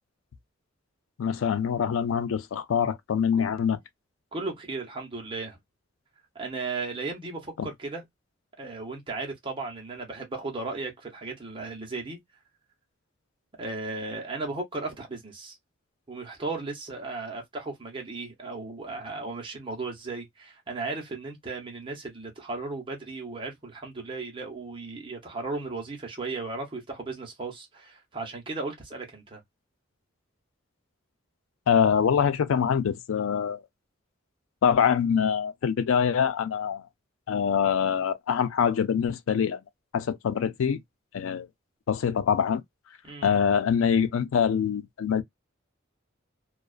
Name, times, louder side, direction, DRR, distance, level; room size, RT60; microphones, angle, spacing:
voice 1, 1.2-3.8 7.6-7.7 31.7-33.6 34.6-36.8 37.3-39.6 39.9-40.8 41.1-41.5 41.9-42.6 43.2-45.2, left 7 dB, 80° left, 0.4 m, -24 dB
voice 2, 4.3-5.6 6.3-8.0 8.6-12.2 13.6-15.6 16.1-29.4 43.0-43.3, right 3 dB, 25° right, 0.8 m, -35 dB
2.3 x 2.3 x 2.3 m
head